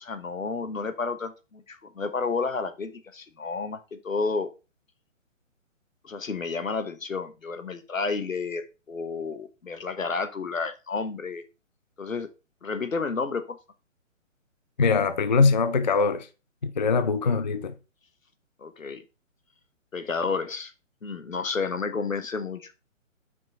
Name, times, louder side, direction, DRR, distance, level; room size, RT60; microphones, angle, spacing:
voice 1, 0.0-4.5 6.0-11.4 12.0-12.3 12.6-13.6 18.6-19.0 19.9-20.7 21.0-22.7, left 4 dB, 80° left, 1.1 m, -31 dB
voice 2, 14.8-16.3 16.6-17.7, left 4 dB, 35° left, 0.4 m, -22 dB
5.7 x 5.3 x 3.8 m
figure-of-eight pair, 135°, 39 cm